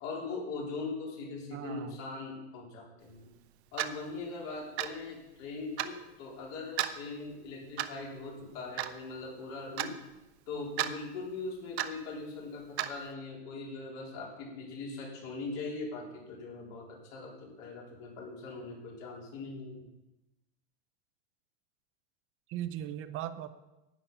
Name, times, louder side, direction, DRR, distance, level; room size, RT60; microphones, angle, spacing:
voice 1, 0.0-3.3 3.7-9.9 10.5-19.8, left 3 dB, 50° left, -2 dB, 4.0 m, -41 dB
voice 2, 1.5-2.0 22.5-23.5, right 11 dB, 40° right, 12 dB, 0.8 m, -38 dB
Clock, 3.8-4.0 4.8-5.0 5.8-5.9 6.8-7.0 7.8-8.0 8.8-8.9 9.8-9.9 10.8-10.9 11.8-12.0 12.8-12.9, right 13 dB, 70° right, 0.9 m, -32 dB
10.0 x 8.9 x 5.6 m, 0.99 s
supercardioid pair, 120°, 34 cm